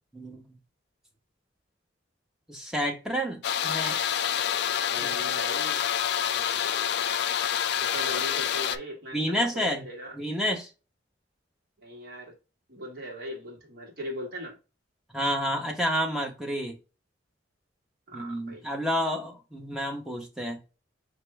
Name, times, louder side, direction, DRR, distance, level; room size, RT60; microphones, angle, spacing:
voice 1, 0.1-0.4 2.5-4.0 5.0-5.2 9.1-9.8 10.1-10.7 15.1-16.8 18.1-20.6, equal, 5° right, 0.9 m, -30 dB
sound 1, 3.4-8.8, left 9 dB, 60° left, 0.3 m, -27 dB
voice 2, 4.9-5.8 7.8-10.2 11.8-12.4 12.7-14.6 18.1-18.6, equal, 55° right, 1.8 m, -39 dB
4.4 x 3.0 x 3.4 m
head